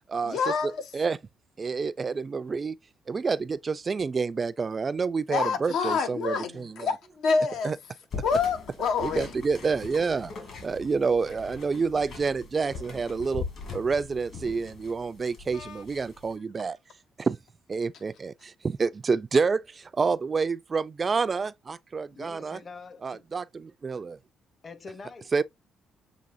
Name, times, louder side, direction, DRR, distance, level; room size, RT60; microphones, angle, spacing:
voice 1, 0.2-0.8 5.3-7.7 8.2-9.3 15.5-15.8, left 5 dB, 80° left, 0.8 m, -27 dB
voice 2, 1.6-2.8 3.1-6.9 7.6-7.8 9.0-10.3 10.6-13.4 13.7-16.8 17.2-17.4 17.7-22.6 23.0-24.2 25.3-25.4, right 4 dB, 35° right, 0.3 m, -28 dB
sound 1, 8.1-16.3, left 5 dB, 60° left, 2.3 m, -41 dB
voice 3, 22.1-23.2 24.6-25.4, left 4 dB, 40° left, 0.8 m, -45 dB
7.1 x 2.8 x 2.5 m
cardioid pair, 90°, 0 cm